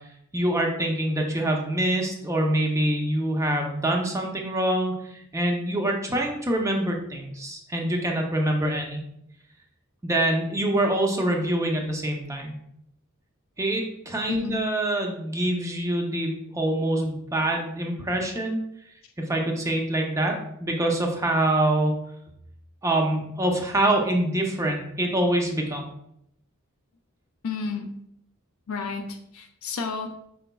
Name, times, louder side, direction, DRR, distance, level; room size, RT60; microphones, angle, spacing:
voice 1, 0.3-9.0 10.0-12.5 13.6-18.6 19.2-22.0 22.8-25.8, right 1 dB, 15° right, 1 dB, 0.6 m, -25 dB
voice 2, 14.3-14.6 27.4-27.9 28.7-30.1, left 5 dB, 75° left, 5 dB, 0.4 m, -31 dB
4.9 x 3.9 x 2.2 m, 0.76 s
head